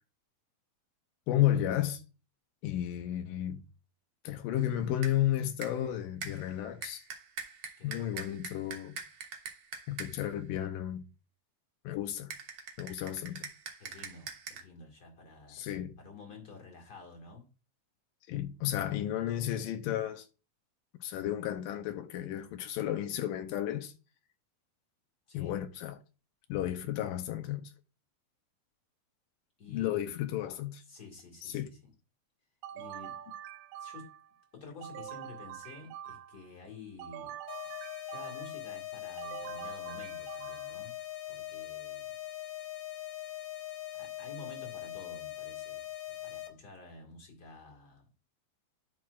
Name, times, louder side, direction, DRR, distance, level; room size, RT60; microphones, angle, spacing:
voice 1, 1.3-2.0 2.6-3.6 4.2-7.0 7.8-8.9 9.9-11.0 11.8-12.3 12.8-13.5 15.5-16.0 18.3-20.3 21.0-23.9 25.3-26.0 26.5-27.7 29.7-30.8 31.4-31.7, left 12 dB, 85° left, 2.3 m, -33 dB
sound 1, 4.6-5.3 5.6-5.9 6.2-10.3 12.3-14.6, right 5 dB, 60° right, 1.7 m, -44 dB
voice 2, 7.8-8.1 13.8-15.7 16.0-17.5 25.3-25.6 29.6-30.1 30.9-31.9 32.7-33.2 33.8-34.2 34.5-37.3 38.1-41.0 41.3-42.1 44.0-48.1, left 3 dB, 35° left, 1.8 m, -50 dB
sound 2, 32.6-34.3 34.8-36.5 37.0-38.6 39.2-40.9, right 10 dB, 90° right, 1.6 m, -45 dB
sound 3, 37.5-46.5, left 14 dB, 65° left, 2.1 m, -41 dB
10.5 x 6.1 x 2.4 m
omnidirectional pair, 3.9 m